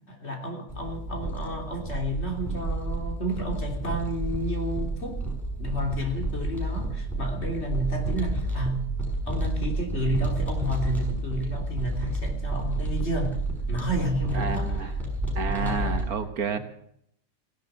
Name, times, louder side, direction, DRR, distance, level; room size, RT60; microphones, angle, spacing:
voice 1, 0.1-5.2 5.6-8.9 9.2-13.4 13.7-14.9 15.5-16.0, right 1 dB, 40° left, 2 dB, 3.5 m, -31 dB
sound 1, 0.7-16.0, right 2 dB, ahead, 5.8 m, -30 dB
voice 2, 14.3-14.9 15.4-16.6, right 5 dB, 65° right, 8 dB, 1.7 m, -30 dB
17.0 x 11.0 x 7.6 m, 0.70 s
omnidirectional pair, 1.7 m